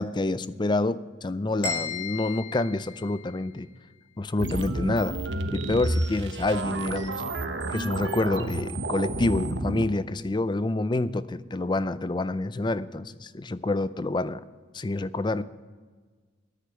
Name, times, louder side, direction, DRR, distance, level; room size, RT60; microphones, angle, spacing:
voice 1, 0.0-3.7 4.2-5.2 5.5-7.3 7.7-14.4 14.7-15.4, left 2 dB, 25° left, 16 dB, 0.4 m, -27 dB
sound 1, 1.6-3.6, left 5 dB, 65° left, 4.9 m, -35 dB
sound 2, 4.4-9.9, right 2 dB, 65° right, 1.1 m, -30 dB
10.0 x 9.6 x 8.7 m, 1.4 s
head